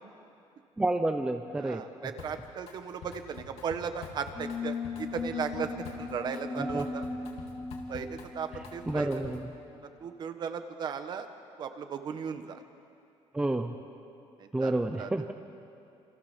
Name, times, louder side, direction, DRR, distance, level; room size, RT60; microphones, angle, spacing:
voice 1, 0.8-1.8 6.6-6.8 8.9-9.4 13.3-13.7 14.5-15.3, right 2 dB, 10° right, 6 dB, 0.8 m, -29 dB
voice 2, 1.6-7.0 7.9-9.1 9.8-11.3 11.6-12.6 14.4-15.1, right 6 dB, 40° right, 8 dB, 1.5 m, -37 dB
Drum kit, 2.2-2.7 3.0-9.5, left 5 dB, 65° left, 3.5 m, -47 dB
sound 1, 4.3-9.6, left 4 dB, 20° left, 2.3 m, -38 dB
28.0 x 28.0 x 7.4 m, 2.6 s
cardioid pair, 180°, 11 cm